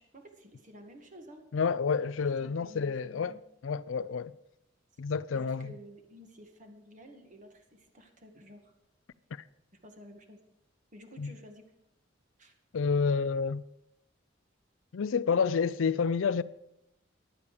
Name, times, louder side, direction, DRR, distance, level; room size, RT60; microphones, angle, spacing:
voice 1, 0.0-1.4 2.2-3.4 5.3-8.7 9.8-10.4 10.9-11.7 12.4-12.5, equal, 40° right, 2.0 m, -52 dB
voice 2, 1.5-4.3 5.0-5.7 9.3-9.4 11.2-11.3 12.7-13.6 14.9-16.4, left 5 dB, 90° left, 0.5 m, -29 dB
15.5 x 11.0 x 5.0 m
head